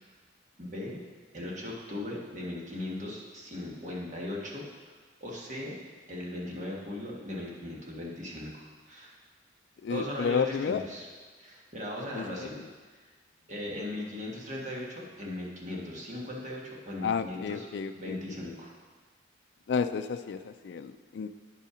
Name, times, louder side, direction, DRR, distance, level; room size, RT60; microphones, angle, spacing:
voice 1, 0.6-1.0 1.3-5.7 6.1-9.1 9.9-11.1 11.4-12.5 13.5-17.7 17.9-18.7, left 1 dB, 40° right, -3 dB, 1.5 m, -38 dB
voice 2, 9.8-10.8 12.1-12.5 17.0-18.2 19.7-21.3, left 6 dB, 70° left, 9 dB, 0.3 m, -31 dB
9.6 x 5.6 x 5.0 m, 1.5 s
head